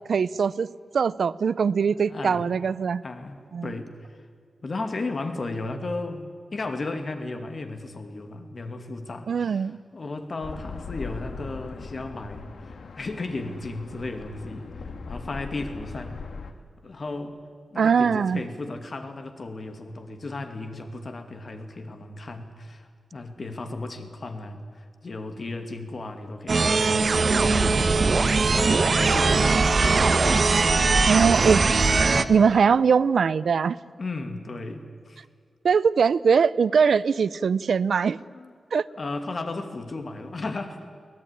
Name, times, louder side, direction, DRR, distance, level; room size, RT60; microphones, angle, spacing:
voice 1, 0.1-3.0 3.5-3.7 9.3-9.8 17.8-18.4 31.1-31.6 32.3-33.8 35.6-38.2 38.7-38.9, right 6 dB, 75° right, 18 dB, 0.6 m, -21 dB
voice 2, 2.1-2.5 3.0-3.9 4.6-16.2 16.8-17.4 17.7-30.1 30.7-31.1 34.0-35.2 38.3-38.5 38.9-40.9, left 2 dB, 45° left, 6 dB, 2.5 m, -35 dB
sound 1, 10.4-16.5, left 4 dB, 75° left, 1.7 m, -39 dB
sound 2, 26.5-32.2, right 4 dB, 50° right, 1.1 m, -20 dB
23.0 x 18.0 x 9.9 m, 2.1 s
wide cardioid pair, 110°, 0 cm